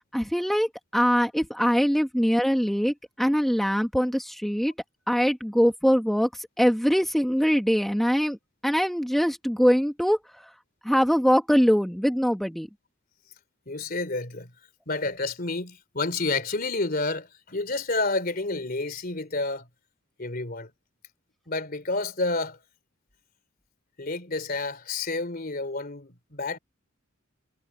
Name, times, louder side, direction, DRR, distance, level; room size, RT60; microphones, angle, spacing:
voice 1, 0.1-4.7 5.1-8.4 8.6-10.5 10.8-12.7, equal, ahead, 1.7 m, -23 dB
voice 2, 13.7-14.5 14.9-19.7 20.2-20.7 21.5-22.6 24.0-26.6, left 3 dB, 45° left, 3.5 m, -29 dB
head